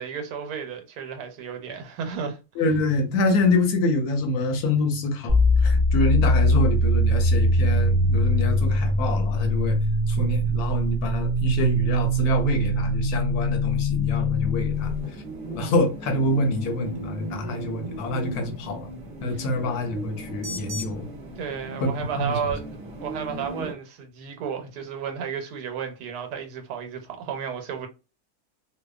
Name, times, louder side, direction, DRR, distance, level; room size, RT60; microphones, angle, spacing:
voice 1, 0.0-2.4 19.3-19.4 21.4-22.6 23.0-27.9, right 7 dB, 85° right, 1.2 m, -33 dB
voice 2, 2.6-5.4 5.6-9.8 10.1-14.9 15.5-18.9 19.2-21.1 21.8-21.9 22.2-22.4, left 2 dB, 80° left, 1.1 m, -26 dB
sound 1, 5.3-15.0, equal, ahead, 0.5 m, -22 dB
sound 2, 14.7-23.7, right 1 dB, 45° right, 0.8 m, -37 dB
2.7 x 2.1 x 2.3 m
omnidirectional pair, 1.7 m